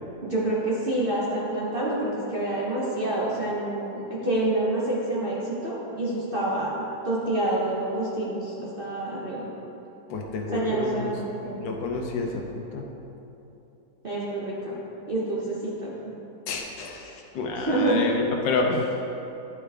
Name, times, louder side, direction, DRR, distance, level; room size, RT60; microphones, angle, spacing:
voice 1, 0.2-5.4 5.6-6.7 7.0-9.5 10.5-11.6 14.0-14.7 15.1-16.1 17.7-18.0, right 1 dB, 40° right, -6 dB, 0.8 m, -27 dB
voice 2, 10.1-11.1 11.6-12.4 12.7-12.8 16.5-19.0, left 3 dB, 80° left, 1 dB, 1.5 m, -29 dB
10.5 x 4.9 x 3.4 m, 2.9 s
omnidirectional pair, 2.0 m